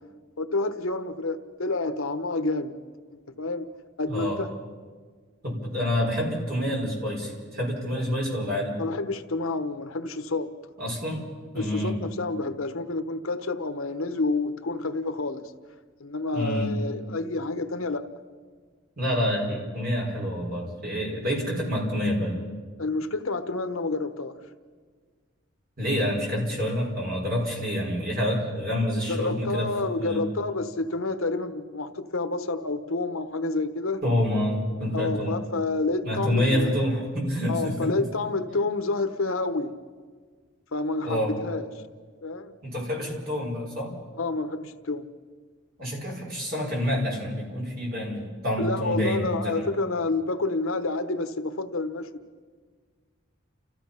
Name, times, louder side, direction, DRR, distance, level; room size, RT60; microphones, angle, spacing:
voice 1, 0.4-2.8 3.1-3.6 4.0-4.5 8.8-10.5 11.5-15.5 16.0-18.1 22.8-24.3 29.1-34.0 34.9-36.7 37.5-39.8 40.7-41.7 42.2-42.6 44.2-45.1 48.6-52.1, left 3 dB, 80° left, 9 dB, 1.1 m, -29 dB
voice 2, 4.1-4.4 5.4-8.8 10.8-11.3 11.5-12.0 16.3-16.7 19.0-22.4 25.8-29.7 30.0-30.3 34.0-35.3 36.0-37.9 41.0-41.3 42.6-43.9 45.8-49.7, equal, 45° right, -2 dB, 5.5 m, -27 dB
30.0 x 15.5 x 5.7 m, 1.5 s
head